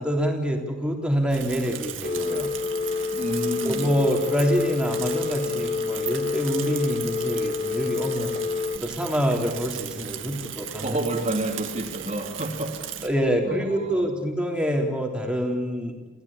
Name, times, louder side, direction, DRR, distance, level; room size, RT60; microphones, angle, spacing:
voice 1, 0.0-2.5 3.6-8.3 8.8-11.0 13.0-15.9, equal, 5° right, 1 dB, 3.5 m, -26 dB
Bicycle / Mechanisms, 1.3-13.1, right 9 dB, 85° right, 2.1 m, -37 dB
Telephone, 2.0-8.8, left 4 dB, 45° left, 1.1 m, -28 dB
voice 2, 3.1-3.9 10.8-12.7 13.4-14.1, right 1 dB, 35° right, 1 dB, 2.9 m, -29 dB
29.0 x 16.0 x 8.7 m, 1.3 s
head